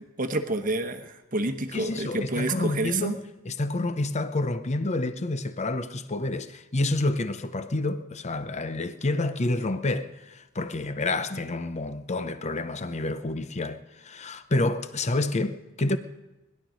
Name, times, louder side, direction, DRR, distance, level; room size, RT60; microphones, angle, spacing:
voice 1, 0.2-3.2, right 2 dB, 40° right, 1.1 m, -28 dB
voice 2, 1.7-3.2 3.5-16.0, left 2 dB, 30° left, 0.7 m, -28 dB
20.0 x 11.5 x 5.2 m
head